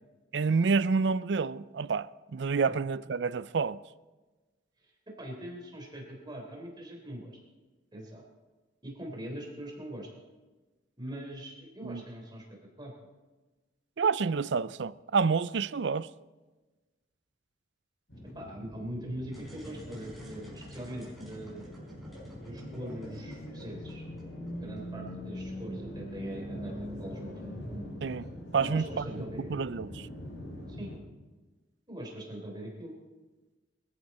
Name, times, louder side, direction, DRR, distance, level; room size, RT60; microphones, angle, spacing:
voice 1, 0.3-3.8 11.8-12.0 14.0-16.1 28.0-28.3 28.5-29.1 29.4-30.1, right 5 dB, 65° right, 0.5 m, -28 dB
voice 2, 5.2-7.4 7.9-8.2 8.8-10.1 11.0-12.9 18.3-21.7 22.4-24.0 24.6-27.6 28.6-29.6 30.7-30.9 31.9-32.9, right 1 dB, 25° right, 3.6 m, -42 dB
sound 1, 18.1-31.0, equal, 90° left, 6.8 m, -42 dB
sound 2, 19.3-25.1, equal, ahead, 5.2 m, -51 dB
23.0 x 14.0 x 4.2 m
head